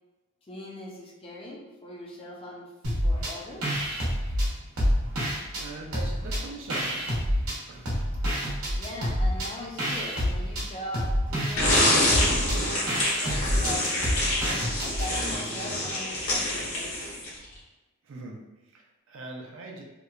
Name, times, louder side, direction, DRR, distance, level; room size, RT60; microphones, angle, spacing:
voice 1, 0.5-2.7 3.0-3.8 8.8-17.1, left 1 dB, 25° left, -2 dB, 0.4 m, -40 dB
sound 1, 2.8-3.3 3.6-5.6 5.9-7.6 7.9-15.1, equal, 85° right, 0.8 m, -28 dB
voice 2, 5.6-7.1 7.7-7.9 18.0-19.8, right 2 dB, 65° right, 0 dB, 0.4 m, -42 dB
sound 2, 11.6-17.4, left 1 dB, 70° left, 0.9 m, -26 dB
2.8 x 2.1 x 2.3 m, 1.0 s
head